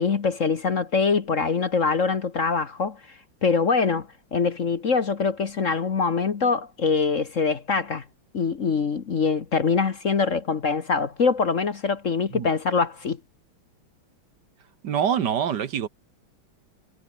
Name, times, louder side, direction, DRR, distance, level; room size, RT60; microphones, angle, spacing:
voice 1, 0.0-3.0 3.4-8.0 8.3-13.2, left 5 dB, 45° left, 1.5 m, -24 dB
voice 2, 14.8-15.9, right 8 dB, 60° right, 1.7 m, -25 dB
omnidirectional pair, 2.2 m